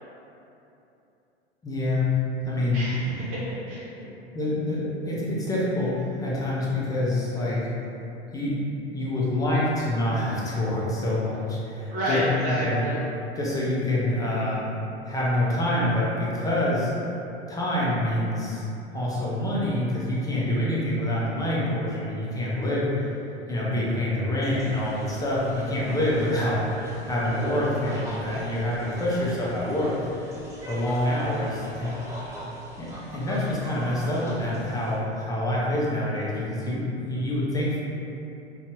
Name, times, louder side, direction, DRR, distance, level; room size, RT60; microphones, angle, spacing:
voice 1, 1.6-2.1 2.4-2.8 4.0-4.1 4.3-7.7 8.3-8.6 8.9-12.2 12.5-12.8 13.4-14.7 15.1-16.9 17.5-18.6 18.9-23.1 23.5-26.6 27.1-30.0 30.7-32.0 32.8-32.9 33.1-37.8, left 1 dB, 10° left, -6 dB, 0.5 m, -26 dB
voice 2, 2.7-3.9 11.9-13.0, equal, 55° right, -8 dB, 0.8 m, -29 dB
sound 1, 24.4-35.0, equal, 10° right, 1.1 m, -42 dB
2.6 x 2.3 x 2.7 m, 2.9 s
hypercardioid pair, 95°, 33 cm